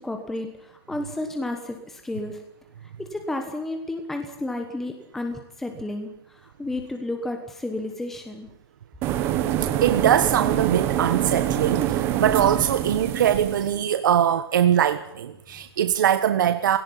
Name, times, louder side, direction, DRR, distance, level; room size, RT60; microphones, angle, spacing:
voice 1, 0.0-2.4 2.8-8.5, left 2 dB, ahead, 5 dB, 1.1 m, -32 dB
sound 1, 9.0-13.8, right 12 dB, 15° right, 1.2 m, -25 dB
voice 2, 9.8-16.8, right 10 dB, 50° right, 9 dB, 1.3 m, -22 dB
17.5 x 16.0 x 9.9 m, 0.83 s
hypercardioid pair, 175°, 13 cm